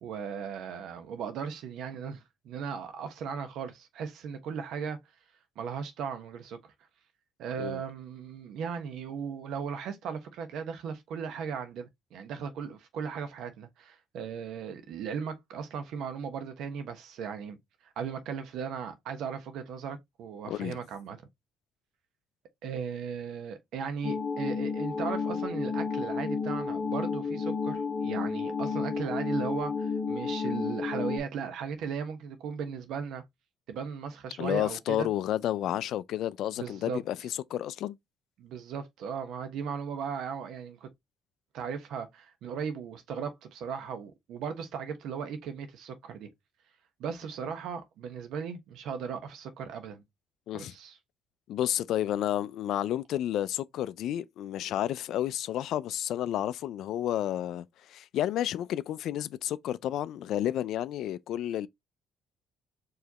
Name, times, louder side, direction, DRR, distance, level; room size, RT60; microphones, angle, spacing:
voice 1, 0.0-5.0 5.6-6.7 7.4-17.6 17.8-21.2 22.6-33.2 33.7-35.1 36.6-37.0 38.4-40.9 41.5-46.3 47.0-50.0 50.5-51.0, right 6 dB, 70° right, 1.1 m, -37 dB
voice 2, 20.5-20.8 34.4-38.0 50.5-50.7 51.5-61.7, left 12 dB, 70° left, 0.3 m, -31 dB
sound 1, 24.0-31.2, left 5 dB, 45° left, 1.0 m, -31 dB
4.8 x 3.2 x 2.9 m
cardioid pair, 100°, 0 cm